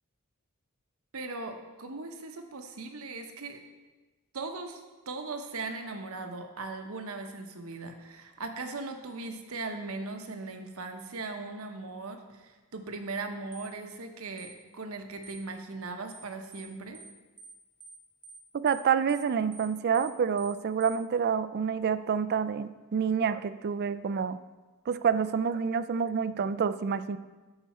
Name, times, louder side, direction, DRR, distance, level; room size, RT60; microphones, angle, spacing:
voice 1, 1.1-3.6 4.3-17.0, right 3 dB, 70° right, 5 dB, 0.9 m, -39 dB
sound 1, 13.5-13.7 14.4-14.5 15.2-15.4 16.1-16.3 16.5-16.7 16.9-17.1 17.4-17.5 17.8-18.0 18.2-18.4 18.7-18.8 19.1-19.3 19.5-19.7 19.9-20.1 20.4-20.5 20.8-21.0, right 3 dB, 10° right, 1.1 m, -49 dB
voice 2, 18.6-24.4 24.9-27.2, right 6 dB, 45° right, 14 dB, 0.3 m, -28 dB
13.0 x 4.9 x 4.3 m, 1.2 s
head